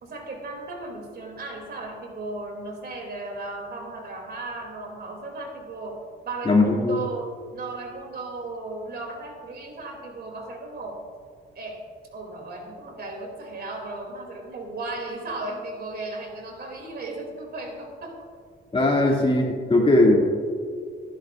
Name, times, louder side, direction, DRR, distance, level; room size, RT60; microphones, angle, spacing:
voice 1, 0.0-11.0 11.5-11.8 12.1-18.3, right 2 dB, 55° right, 2 dB, 2.7 m, -35 dB
voice 2, 6.5-7.0 18.7-20.2, left 2 dB, 25° left, -1 dB, 2.4 m, -19 dB
20.5 x 11.0 x 2.5 m, 2.1 s
cardioid pair, 90°, 20 cm